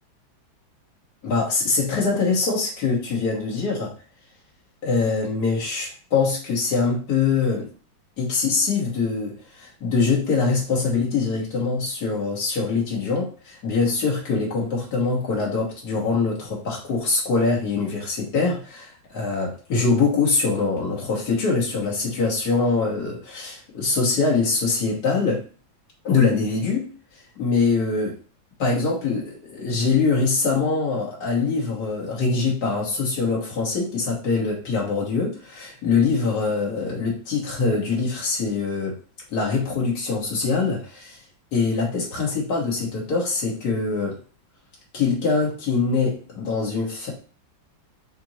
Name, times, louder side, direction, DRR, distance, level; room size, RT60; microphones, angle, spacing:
voice 1, 1.2-3.9 4.8-7.7 8.2-25.4 26.0-26.9 27.4-28.2 28.6-39.0 39.3-41.2 41.5-44.2 44.9-47.1, left 4 dB, 55° left, -4 dB, 2.0 m, -23 dB
5.7 x 2.7 x 2.9 m, 0.38 s
omnidirectional pair, 2.2 m